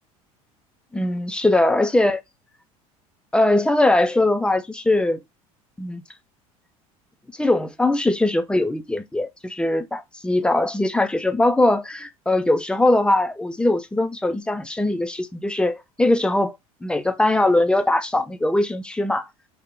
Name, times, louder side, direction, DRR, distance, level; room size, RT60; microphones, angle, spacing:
voice 1, 0.9-2.2 3.3-5.2 5.8-6.0 7.4-19.3, left 2 dB, 5° left, 0.4 m, -21 dB
3.4 x 2.1 x 3.8 m
figure-of-eight pair, 70°, 19 cm